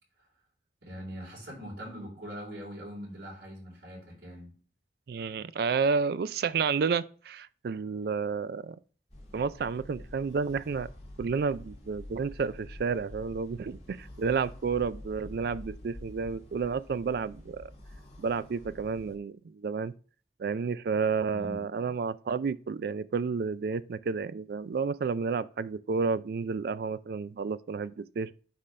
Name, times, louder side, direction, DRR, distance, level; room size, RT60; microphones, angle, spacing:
voice 1, 0.8-4.5 21.3-21.6, equal, 90° right, 3.8 m, -42 dB
voice 2, 5.1-8.8 9.3-10.9 11.2-17.7 18.2-19.9 20.4-28.3, right 5 dB, 55° right, 0.3 m, -31 dB
sound 1, 9.1-19.1, left 1 dB, 35° left, 2.4 m, -47 dB
9.8 x 3.8 x 3.2 m
head